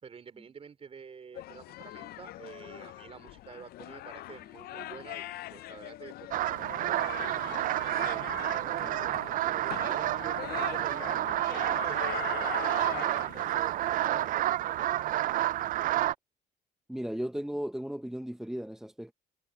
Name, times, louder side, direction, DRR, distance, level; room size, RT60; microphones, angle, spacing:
voice 1, 0.0-15.3, right 6 dB, 35° right, 3.8 m, -49 dB
sound 1, 1.3-14.3, left 15 dB, 65° left, 0.5 m, -42 dB
sound 2, 6.3-16.1, right 14 dB, 55° right, 0.4 m, -30 dB
voice 2, 16.9-19.1, equal, 5° right, 0.8 m, -35 dB
cardioid pair, 110°, 17 cm